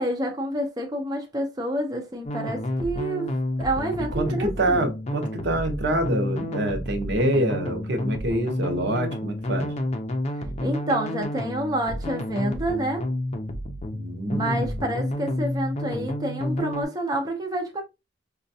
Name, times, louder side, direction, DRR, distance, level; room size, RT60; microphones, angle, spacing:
voice 1, 0.0-3.3 3.6-4.8 10.6-13.0 14.3-17.8, right 1 dB, 20° right, 0.5 m, -28 dB
sound 1, 2.3-16.8, left 1 dB, 35° left, 0.5 m, -30 dB
voice 2, 4.1-9.7 13.9-14.7, right 1 dB, 65° right, 0.8 m, -26 dB
4.9 x 2.3 x 2.6 m
head